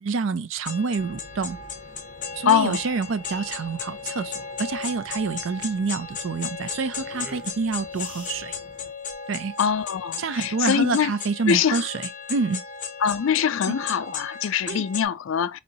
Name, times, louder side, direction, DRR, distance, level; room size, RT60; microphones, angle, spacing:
voice 1, 0.0-1.6 2.4-8.5 9.3-9.6 10.2-12.6 13.7-13.8 14.7-14.8, right 4 dB, 70° right, 0.4 m, -27 dB
sound 1, 0.7-15.1, left 5 dB, 40° left, 0.7 m, -35 dB
sound 2, 1.0-8.9, right 1 dB, 45° right, 1.1 m, -50 dB
sound 3, 1.9-10.0, equal, 5° right, 0.7 m, -49 dB
voice 2, 2.5-2.8 9.6-11.1 11.5-11.8 13.0-15.6, left 7 dB, 70° left, 0.4 m, -23 dB
4.2 x 2.8 x 2.7 m
head